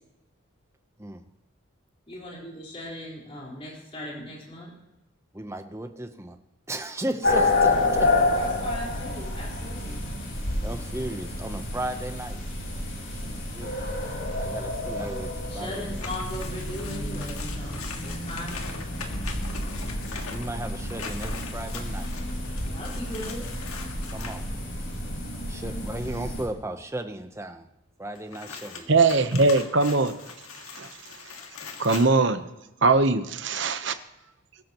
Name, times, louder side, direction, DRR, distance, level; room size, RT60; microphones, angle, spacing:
voice 1, 2.1-4.7 7.4-7.5 8.3-10.0 15.5-18.9 22.7-23.5, left 1 dB, 25° left, -4 dB, 4.5 m, -38 dB
voice 2, 5.3-6.4 6.7-8.1 10.6-12.4 13.5-13.7 14.4-15.8 20.3-22.1 24.1-24.5 25.5-27.7 28.0-28.9, right 1 dB, 15° right, 7 dB, 0.8 m, -35 dB
sound 1, 7.2-26.4, left 2 dB, 60° left, 4.7 m, -29 dB
sound 2, 16.0-24.5 28.1-32.1, left 5 dB, 90° left, 1.8 m, -41 dB
voice 3, 28.9-30.2 30.8-30.9 31.8-32.4 32.8-33.9, right 3 dB, 55° right, 10 dB, 0.9 m, -21 dB
22.0 x 13.5 x 3.0 m, 0.95 s
head